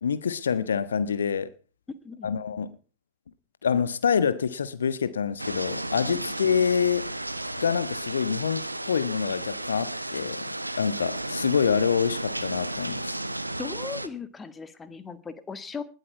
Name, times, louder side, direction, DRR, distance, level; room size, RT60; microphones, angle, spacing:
voice 1, 0.0-1.5 2.2-2.7 3.6-7.1 7.6-13.2, left 7 dB, 70° left, 1.2 m, -26 dB
sound 1, 5.4-14.1, right 1 dB, 85° right, 1.0 m, -33 dB
voice 2, 13.6-15.8, left 5 dB, 15° left, 1.8 m, -38 dB
20.0 x 11.0 x 4.6 m
figure-of-eight pair, 90°, 0 cm